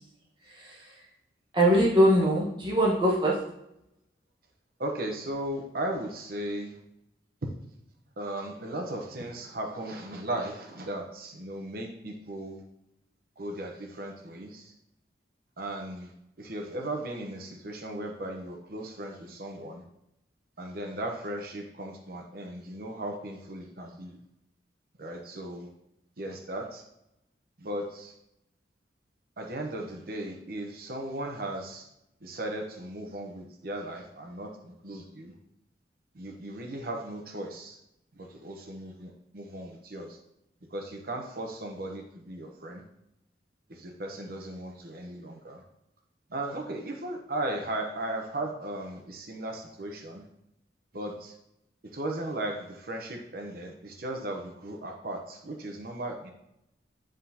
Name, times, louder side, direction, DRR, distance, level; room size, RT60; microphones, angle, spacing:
voice 1, 0.5-0.9 1.5-3.4, equal, 25° right, -4 dB, 1.2 m, -22 dB
voice 2, 4.8-6.8 8.2-12.6 13.4-14.7 15.6-16.1 16.4-19.8 20.6-24.2 25.0-25.7 26.2-26.8 27.6-28.1 29.4-31.9 32.2-35.4 36.1-37.8 38.1-40.2 40.7-42.8 43.7-45.6 46.3-50.2 50.9-51.3 51.9-56.3, right 1 dB, 55° right, 2 dB, 0.8 m, -36 dB
9.7 x 3.7 x 2.8 m, 0.84 s
head